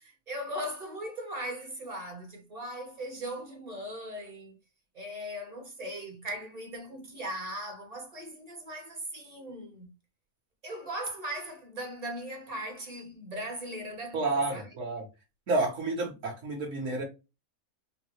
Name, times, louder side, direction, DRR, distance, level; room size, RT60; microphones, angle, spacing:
voice 1, 0.0-4.5 4.9-9.9 10.6-14.7, right 1 dB, 35° right, 0.7 m, -39 dB
voice 2, 14.1-15.0 15.5-17.0, right 2 dB, 65° right, 1.2 m, -30 dB
3.9 x 2.0 x 2.9 m
omnidirectional pair, 1.5 m